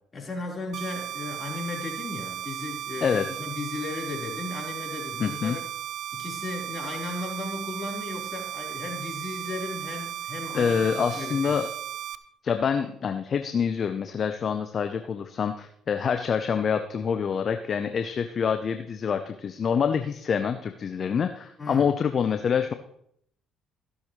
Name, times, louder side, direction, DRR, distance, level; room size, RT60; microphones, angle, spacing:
voice 1, 0.1-5.6 6.1-11.6 21.6-21.9, left 3 dB, 35° left, -2 dB, 4.3 m, -36 dB
sound 1, 0.7-12.2, right 12 dB, 65° right, 0.7 m, -35 dB
voice 2, 5.2-5.6 10.5-11.7 12.4-22.7, left 7 dB, 50° left, 8 dB, 0.8 m, -26 dB
15.0 x 11.5 x 3.3 m, 0.70 s
hypercardioid pair, 55°, 0 cm